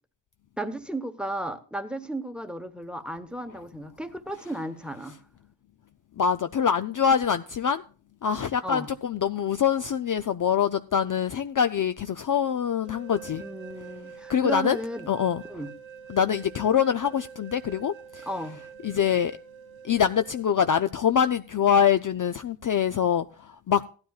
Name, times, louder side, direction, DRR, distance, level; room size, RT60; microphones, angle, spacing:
voice 1, 0.6-5.2 8.6-8.9 13.4-15.1 15.5-15.7 18.3-18.6, right 1 dB, ahead, 1.0 m, -34 dB
voice 2, 6.2-7.8 8.2-13.4 14.3-14.8 15.1-15.4 16.1-18.3 18.8-19.4 19.8-23.9, left 8 dB, 45° left, 0.4 m, -24 dB
sound 1, 12.9-20.5, right 7 dB, 90° right, 1.5 m, -46 dB
16.5 x 12.5 x 2.3 m
wide cardioid pair, 150°, 45 cm